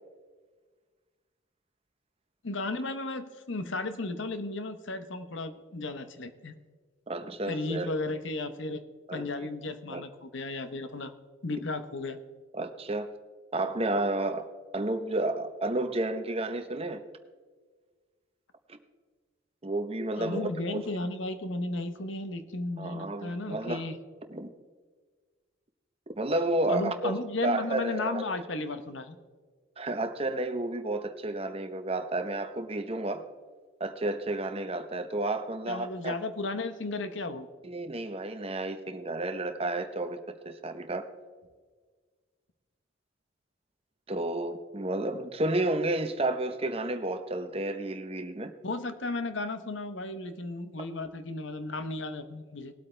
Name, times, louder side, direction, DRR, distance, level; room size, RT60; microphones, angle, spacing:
voice 1, 2.4-6.5 7.5-8.9 9.1-11.1 11.4-12.2 20.2-24.0 26.7-29.2 35.7-37.5 48.6-52.7, left 2 dB, 65° left, 10 dB, 0.9 m, -34 dB
voice 2, 7.1-7.9 9.1-9.2 9.9-10.0 12.5-13.1 13.5-14.5 14.7-17.0 18.7-18.8 19.6-20.8 22.8-23.9 24.3-24.5 26.2-27.1 27.4-28.3 29.8-33.2 33.8-36.1 37.6-40.2 40.4-41.0 44.1-48.5, right 2 dB, 30° right, 8 dB, 0.9 m, -31 dB
20.0 x 8.3 x 3.3 m, 1.5 s
head